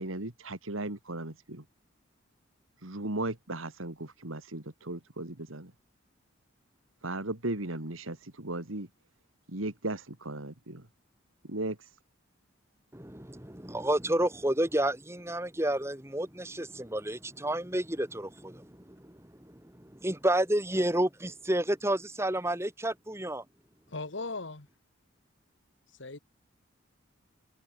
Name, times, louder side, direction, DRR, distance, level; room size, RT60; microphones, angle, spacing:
voice 1, 0.0-1.6 2.8-5.7 7.0-8.9 9.5-10.9 11.4-11.9, right 2 dB, 85° right, 2.9 m, -36 dB
voice 2, 12.9-23.4, right 1 dB, 15° right, 1.8 m, -30 dB
voice 3, 23.9-24.7 26.0-26.2, left 3 dB, 65° left, 1.6 m, -37 dB
head